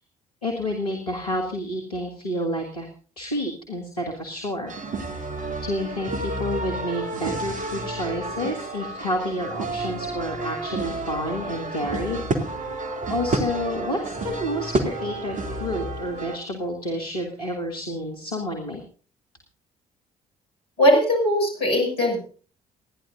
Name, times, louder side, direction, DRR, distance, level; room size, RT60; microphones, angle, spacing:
voice 1, 0.4-2.9 3.2-4.7 5.1-5.3 5.6-12.3 12.6-12.7 13.1-18.8, equal, 85° left, -2 dB, 1.9 m, -29 dB
sound 1, 4.7-16.4, right 2 dB, 40° right, 2.6 m, -30 dB
voice 2, 20.8-22.2, equal, 60° left, 1 dB, 6.6 m, -20 dB
29.0 x 10.5 x 2.6 m, 0.39 s
figure-of-eight pair, 50°, 19 cm